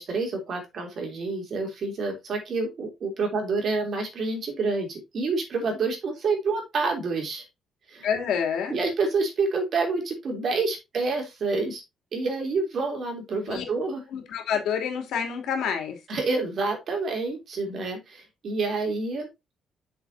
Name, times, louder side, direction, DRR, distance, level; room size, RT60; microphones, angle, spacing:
voice 1, 0.0-7.4 7.9-8.1 8.7-11.8 12.1-14.0 16.1-19.3, right 3 dB, 50° right, 3.1 m, -28 dB
voice 2, 8.0-8.7 13.5-13.6 14.1-16.0, left 7 dB, 80° left, 2.8 m, -28 dB
8.4 x 6.7 x 2.7 m
cardioid pair, 150°, 0 cm